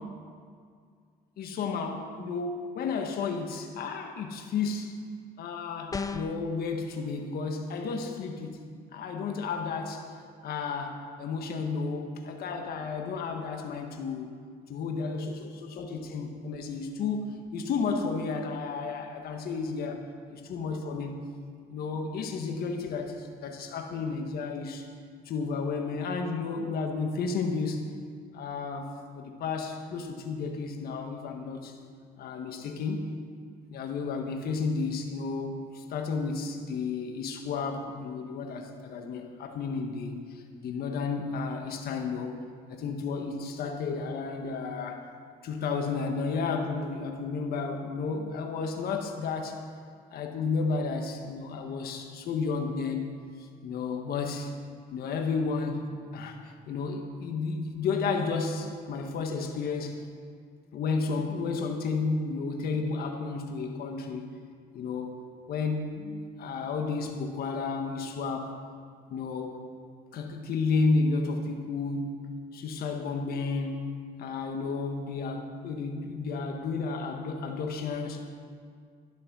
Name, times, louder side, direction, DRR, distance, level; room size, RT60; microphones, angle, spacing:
voice 1, 1.4-5.0 5.4-8.6 8.9-10.1 10.4-14.3 14.7-20.0 20.3-21.2 21.7-24.8 25.2-27.9 28.3-28.9 29.1-31.7 32.2-33.1 33.7-42.4 42.7-45.1 45.4-49.6 50.1-53.2 53.6-54.5 54.9-60.0 60.7-64.3 64.7-65.2 65.5-68.6 69.1-69.6 70.1-72.2 72.5-73.8 74.2-78.3, left 4 dB, 65° left, 4 dB, 1.5 m, -32 dB
sound 1, 5.9-6.5, left 4 dB, 20° left, 0.6 m, -33 dB
12.0 x 11.0 x 6.2 m, 2.1 s
cardioid pair, 110°, 17 cm